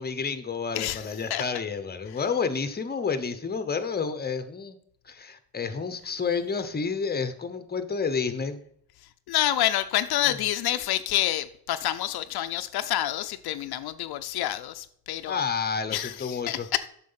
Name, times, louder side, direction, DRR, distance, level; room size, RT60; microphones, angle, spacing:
voice 1, 0.0-4.8 5.0-8.6 15.3-16.7, left 5 dB, 25° left, 11 dB, 0.9 m, -30 dB
voice 2, 0.7-1.4 9.3-15.4 15.9-16.9, left 13 dB, 80° left, 10 dB, 0.6 m, -28 dB
7.5 x 6.1 x 5.6 m, 0.67 s
cardioid pair, 100°, 37 cm